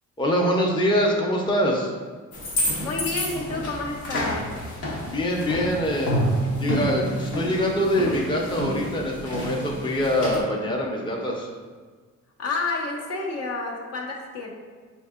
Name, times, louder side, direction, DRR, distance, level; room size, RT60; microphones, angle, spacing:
voice 1, 0.2-1.9 5.0-11.5, equal, 15° left, -1 dB, 0.6 m, -24 dB
sound 1, 2.3-10.4, equal, 75° left, 0.9 m, -29 dB
voice 2, 2.8-4.5 12.4-14.5, left 3 dB, 55° left, 0 dB, 0.7 m, -29 dB
5.3 x 2.6 x 2.4 m, 1.5 s
cardioid pair, 90°, 30 cm